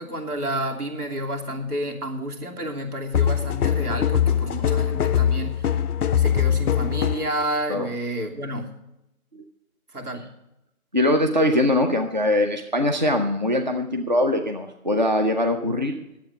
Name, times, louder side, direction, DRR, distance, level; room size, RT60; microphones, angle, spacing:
voice 1, 0.0-5.8 6.2-8.7 9.9-10.3, right 1 dB, 80° right, 2 dB, 2.9 m, -30 dB
sound 1, 3.1-7.3, left 9 dB, 80° left, 0.5 m, -22 dB
voice 2, 10.9-16.0, left 1 dB, 30° right, 4 dB, 0.6 m, -22 dB
10.5 x 8.0 x 8.3 m, 0.87 s
figure-of-eight pair, 165°, 45 cm